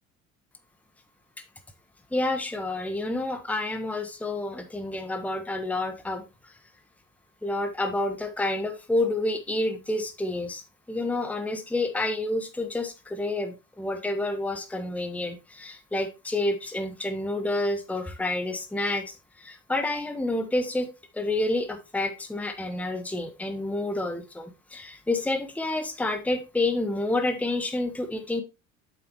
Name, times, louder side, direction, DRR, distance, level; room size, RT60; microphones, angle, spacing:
voice 1, 2.1-6.3 7.4-10.6 10.9-19.1 19.4-20.9 21.1-28.4, left 2 dB, 5° left, 8 dB, 1.0 m, -29 dB
8.5 x 7.1 x 3.0 m, 0.27 s
figure-of-eight pair, 55°, 40 cm